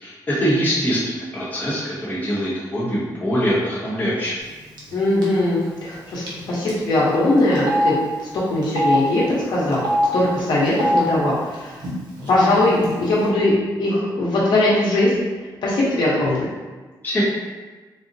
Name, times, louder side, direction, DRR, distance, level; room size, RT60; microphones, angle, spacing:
voice 1, 0.0-4.3 17.0-17.2, equal, 25° left, -8 dB, 0.8 m, -23 dB
Telephone, 4.8-5.0 5.2-5.4 6.3-6.4 6.7-6.8 7.6-7.9 8.6-9.0 9.7-10.1 10.7-11.0 11.8-11.9 12.2-12.9, right 1 dB, 70° right, 0.8 m, -21 dB
voice 2, 4.9-8.0 8.3-9.2 9.5-9.8 10.1-11.8 12.3-15.1 15.6-16.5, left 1 dB, 75° left, -7 dB, 0.8 m, -20 dB
3.7 x 2.0 x 2.6 m, 1.3 s
wide cardioid pair, 170°, 8 cm